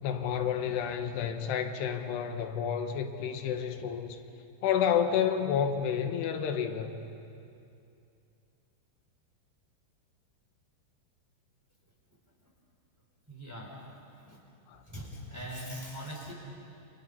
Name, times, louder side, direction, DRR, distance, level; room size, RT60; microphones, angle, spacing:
voice 1, 0.0-4.2 4.6-6.9 14.7-14.8, left 8 dB, 90° left, 6 dB, 3.3 m, -30 dB
voice 2, 13.3-14.4 14.8-16.3, equal, 5° right, -3 dB, 4.3 m, -42 dB
29.0 x 26.5 x 5.7 m, 2.6 s
omnidirectional pair, 4.7 m